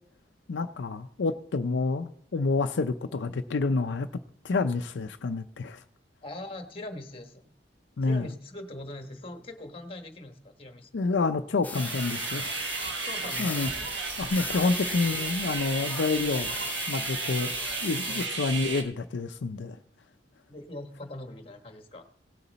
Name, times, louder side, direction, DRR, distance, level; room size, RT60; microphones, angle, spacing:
voice 1, 0.5-4.1 4.4-5.8 8.0-8.3 10.9-12.6 13.4-13.7 14.2-16.5 16.9-17.5 17.8-19.8, left 3 dB, 85° left, 7 dB, 0.5 m, -28 dB
voice 2, 6.2-7.5 8.0-10.9 13.0-13.7 18.1-18.3 20.5-22.1, left 1 dB, 30° left, 6 dB, 1.3 m, -41 dB
sound 1, 11.6-18.3, left 4 dB, 10° left, 0.4 m, -38 dB
sound 2, 11.7-18.8, right 4 dB, 80° right, 1.3 m, -34 dB
17.5 x 6.8 x 4.2 m, 0.64 s
head